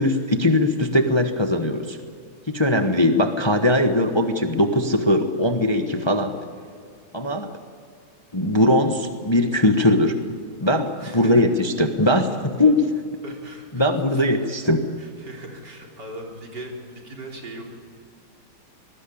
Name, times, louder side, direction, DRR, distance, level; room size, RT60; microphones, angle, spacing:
voice 1, 0.0-2.0 2.5-6.4 7.1-7.5 8.3-10.1 10.6-12.9 13.7-14.9, left 1 dB, 15° left, 6 dB, 1.1 m, -20 dB
voice 2, 11.0-11.5 13.2-14.5 15.0-17.6, right 1 dB, 55° right, 1 dB, 4.4 m, -39 dB
25.0 x 20.0 x 8.6 m, 2.1 s
omnidirectional pair, 2.3 m